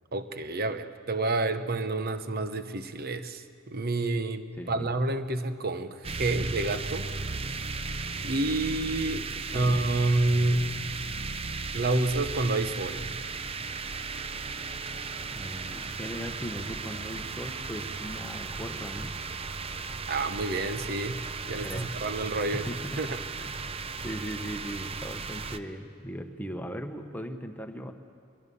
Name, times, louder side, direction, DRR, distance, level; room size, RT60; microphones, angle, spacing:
voice 1, 0.1-7.1 8.2-9.3 9.5-10.7 11.7-13.1 20.1-21.2 21.5-22.7 23.0-23.2, right 2 dB, 45° right, 10 dB, 1.0 m, -29 dB
voice 2, 4.6-4.9 9.5-9.9 15.3-19.2 21.6-21.9 22.4-23.0 23.4-23.6 24.0-27.9, equal, 10° left, 5 dB, 1.1 m, -38 dB
sound 1, 6.0-25.6, right 4 dB, 30° right, 0.6 m, -36 dB
22.0 x 21.5 x 7.1 m, 2.4 s
head